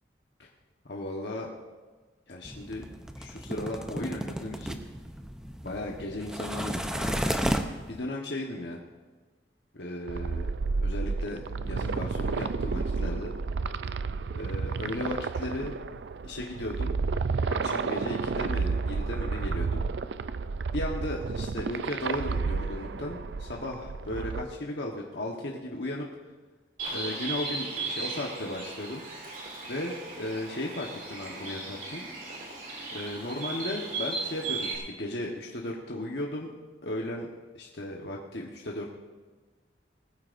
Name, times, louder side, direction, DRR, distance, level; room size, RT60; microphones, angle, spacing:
voice 1, 0.8-1.5 2.3-2.8 3.2-4.8 5.6-7.2 7.9-8.8 9.7-10.5 10.8-13.3 14.3-15.7 16.2-17.0 17.4-19.8 20.7-26.1 26.9-29.0 29.7-32.0 32.9-36.5 36.8-37.3 37.5-38.9, left 1 dB, 65° left, -1 dB, 1.2 m, -35 dB
sound 1, 2.4-8.0, equal, 5° right, 0.6 m, -33 dB
sound 2, 10.1-24.4, right 4 dB, 70° right, 0.4 m, -31 dB
Bird, 26.8-34.8, right 3 dB, 50° right, 2.9 m, -36 dB
20.0 x 14.5 x 2.6 m, 1.3 s
head